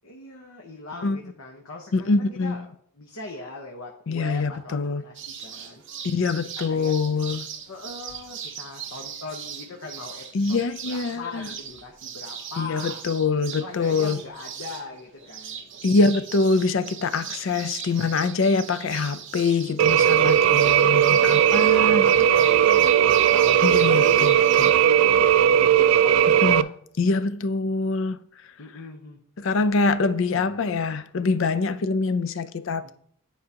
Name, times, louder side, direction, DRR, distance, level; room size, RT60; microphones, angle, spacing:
voice 1, 0.0-2.7 3.0-5.8 6.7-6.9 7.7-10.6 10.9-13.0 13.6-15.7 17.4-17.6 20.1-24.3 24.8-26.7 28.6-29.2 30.3-30.6 32.8-32.9, left 2 dB, 75° left, 1.0 m, -39 dB
voice 2, 1.9-2.6 4.1-5.0 6.0-7.5 10.3-11.5 12.6-14.2 15.8-22.0 23.6-24.7 26.4-26.7 27.0-28.2 29.4-32.9, left 3 dB, 60° left, 0.5 m, -24 dB
sound 1, 5.1-24.7, right 8 dB, 55° right, 0.9 m, -39 dB
sound 2, 19.8-26.6, right 10 dB, 80° right, 0.3 m, -18 dB
10.0 x 4.8 x 2.8 m
head